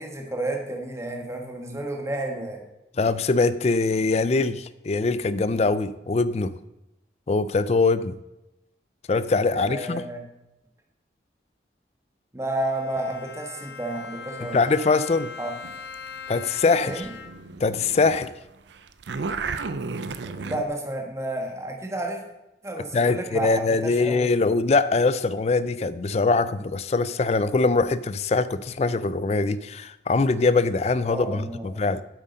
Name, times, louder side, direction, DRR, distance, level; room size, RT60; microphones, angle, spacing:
voice 1, 0.0-2.6 9.5-10.2 12.3-14.7 15.4-15.5 16.8-17.1 20.3-22.2 22.6-24.3 31.0-31.8, right 1 dB, 15° right, 1 dB, 1.3 m, -31 dB
voice 2, 3.0-6.5 7.3-8.2 9.1-10.0 14.5-15.3 16.3-17.1 17.6-18.3 22.9-32.0, left 3 dB, 35° left, 15 dB, 0.3 m, -22 dB
Bowed string instrument, 12.6-17.6, left 5 dB, 65° left, 0.8 m, -40 dB
sound 1, 15.6-18.3 18.6-20.6, right 4 dB, 75° right, 0.5 m, -34 dB
8.2 x 7.4 x 5.2 m, 0.94 s
head